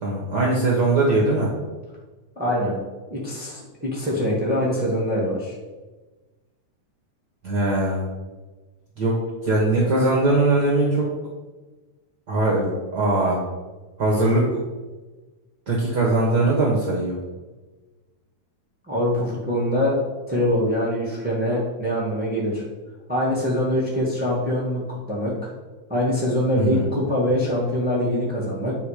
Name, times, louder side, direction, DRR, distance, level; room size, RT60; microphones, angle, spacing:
voice 1, 0.0-1.5 7.4-8.0 9.0-9.2 9.4-11.0 12.3-13.4 14.0-14.4 15.7-17.2 26.6-26.8, right 2 dB, 70° right, -3 dB, 1.0 m, -20 dB
voice 2, 2.3-2.7 3.1-5.5 18.9-20.0 20.3-22.6 23.1-24.8 25.1-25.3 25.9-28.7, equal, 15° right, -5 dB, 0.3 m, -23 dB
9.1 x 3.6 x 4.9 m, 1.2 s
omnidirectional pair, 3.5 m